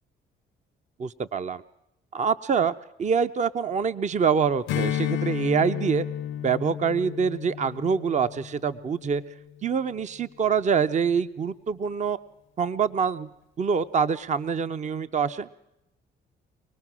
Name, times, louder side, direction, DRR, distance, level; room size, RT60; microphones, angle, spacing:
voice 1, 1.0-1.6 2.1-6.1 6.4-9.2 9.6-12.2 12.6-13.3 13.6-15.5, right 6 dB, 35° right, 13 dB, 0.7 m, -25 dB
Strum, 4.7-9.5, left 10 dB, 90° left, 0.8 m, -32 dB
24.5 x 18.5 x 6.1 m, 0.86 s
cardioid pair, 90°, 20 cm